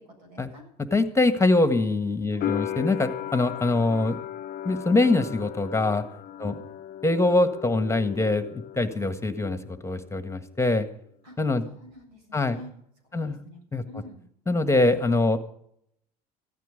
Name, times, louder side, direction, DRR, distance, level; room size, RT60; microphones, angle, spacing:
voice 1, 0.0-0.6 6.4-6.6 11.2-11.3 11.6-12.8 13.0-13.6 13.9-14.2, left 1 dB, 80° right, 4 dB, 7.6 m, -47 dB
voice 2, 0.8-4.2 4.6-6.0 6.4-6.6 7.0-10.9 11.4-11.6 12.3-12.6 13.1-13.4 13.7-13.8 14.5-15.4, left 2 dB, 15° left, 9 dB, 1.6 m, -23 dB
sound 1, 2.4-9.2 9.5-10.4, left 11 dB, 45° left, 0.8 m, -36 dB
15.5 x 13.0 x 5.2 m, 0.69 s
hypercardioid pair, 75°, 20 cm